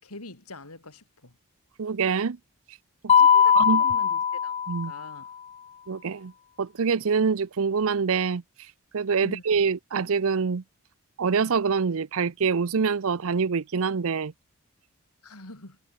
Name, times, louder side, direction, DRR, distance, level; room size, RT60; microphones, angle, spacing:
voice 1, 0.0-1.4 3.3-4.6 4.8-5.3 9.2-9.4 15.2-15.8, left 2 dB, 85° left, 5.1 m, -43 dB
voice 2, 1.8-2.4 3.0-3.1 3.5-3.8 4.7-4.9 5.9-6.3 6.6-8.4 8.9-10.6 11.2-14.3, right 5 dB, 65° right, 0.6 m, -25 dB
Mallet percussion, 3.1-5.2, left 7 dB, 30° left, 0.4 m, -20 dB
head